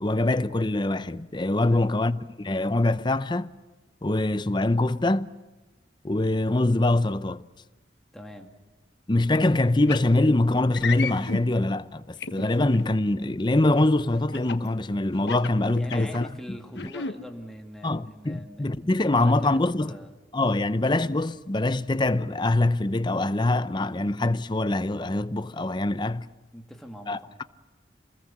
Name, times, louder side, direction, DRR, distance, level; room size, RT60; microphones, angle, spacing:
voice 1, 0.0-3.5 4.0-5.3 6.0-7.4 9.1-16.3 17.8-20.0 20.3-26.3 27.1-27.4, left 2 dB, 25° left, 0.7 m, -24 dB
voice 2, 8.1-8.5 15.7-18.9 19.2-19.6 19.9-20.1 26.5-27.4, equal, ahead, 2.1 m, -43 dB
sound 1, 9.9-10.1 10.7-11.4 12.2-12.8 14.3-14.7 15.2-16.2 16.7-17.1, left 4 dB, 70° left, 1.2 m, -32 dB
27.5 x 21.0 x 7.4 m
head